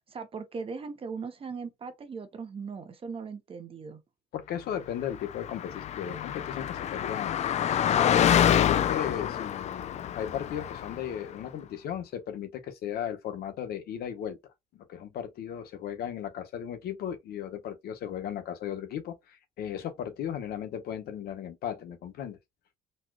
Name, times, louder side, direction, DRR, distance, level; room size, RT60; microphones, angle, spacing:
voice 1, 0.1-4.0, right 5 dB, 35° right, 0.8 m, -39 dB
voice 2, 4.3-14.4 14.7-22.4, left 9 dB, 70° left, 0.9 m, -36 dB
Car passing by, 5.2-11.1, left 10 dB, 40° left, 0.4 m, -27 dB
4.2 x 2.3 x 2.3 m
cardioid pair, 110°, 17 cm